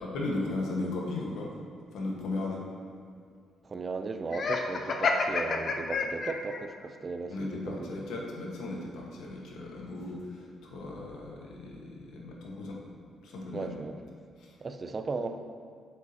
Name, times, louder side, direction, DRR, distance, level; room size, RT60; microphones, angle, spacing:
voice 1, 0.0-1.6 1.9-2.9 7.3-12.8 13.2-13.7 14.4-14.6, left 2 dB, 80° left, -2 dB, 1.4 m, -36 dB
voice 2, 3.6-7.9 13.5-14.0 14.6-15.4, right 3 dB, 35° right, 8 dB, 0.5 m, -36 dB
Laughter, 4.3-6.6, left 4 dB, 55° left, 0.6 m, -29 dB
8.1 x 7.1 x 2.9 m, 2.1 s
cardioid pair, 90°, 0 cm